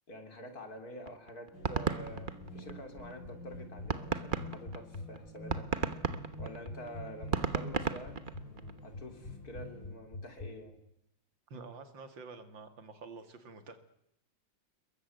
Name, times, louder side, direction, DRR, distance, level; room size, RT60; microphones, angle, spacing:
voice 1, 0.1-5.7 6.4-8.2 8.8-10.8, equal, 55° left, 6 dB, 3.9 m, -47 dB
sound 1, 1.1-3.1 3.5-3.6 3.9-8.8, right 5 dB, 30° right, 1.1 m, -34 dB
sound 2, 1.5-9.9, equal, 80° left, 5.1 m, -50 dB
sound 3, 2.1-10.5, left 2 dB, 35° left, 1.5 m, -43 dB
voice 2, 11.5-13.8, right 4 dB, 90° right, 9 dB, 2.9 m, -48 dB
26.5 x 22.5 x 8.1 m, 0.79 s
omnidirectional pair, 2.0 m